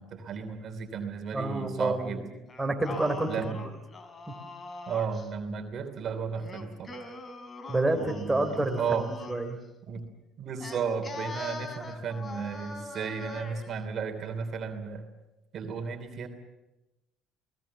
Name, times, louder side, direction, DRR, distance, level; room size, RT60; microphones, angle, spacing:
voice 1, 0.0-2.2 3.2-3.6 4.9-6.9 7.9-9.1 9.9-10.1 10.4-15.1 15.5-16.3, right 6 dB, 55° right, 6 dB, 3.1 m, -34 dB
voice 2, 1.3-2.3 2.6-3.3 7.7-9.6, right 2 dB, 15° right, 4 dB, 3.7 m, -28 dB
Singing, 2.5-5.3 6.4-9.6 10.6-13.7, left 3 dB, 35° left, 3.8 m, -42 dB
29.0 x 19.0 x 7.2 m, 1.0 s
supercardioid pair, 75°, 0 cm